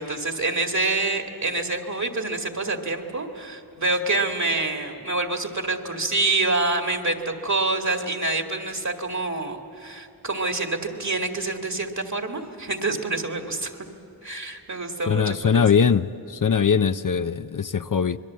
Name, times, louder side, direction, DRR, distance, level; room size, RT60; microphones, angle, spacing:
voice 1, 0.0-13.9 14.2-15.6, right 2 dB, 50° right, 4 dB, 2.1 m, -27 dB
voice 2, 15.1-18.2, left 6 dB, 55° left, 11 dB, 0.6 m, -21 dB
27.0 x 22.0 x 7.6 m, 2.6 s
wide cardioid pair, 50°, 38 cm